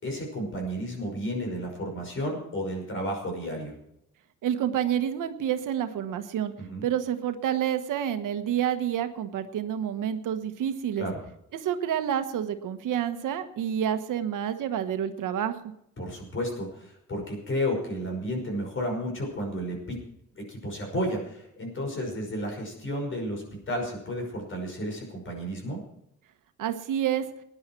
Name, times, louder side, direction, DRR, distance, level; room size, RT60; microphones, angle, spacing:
voice 1, 0.0-3.7 6.6-6.9 11.0-11.2 16.0-20.0 20.4-25.8, equal, 40° left, 2 dB, 5.7 m, -32 dB
voice 2, 4.4-6.5 6.8-11.1 11.5-15.6 26.6-27.3, right 9 dB, 80° right, 8 dB, 1.3 m, -28 dB
19.0 x 10.5 x 4.6 m, 0.76 s
cardioid pair, 145°, 31 cm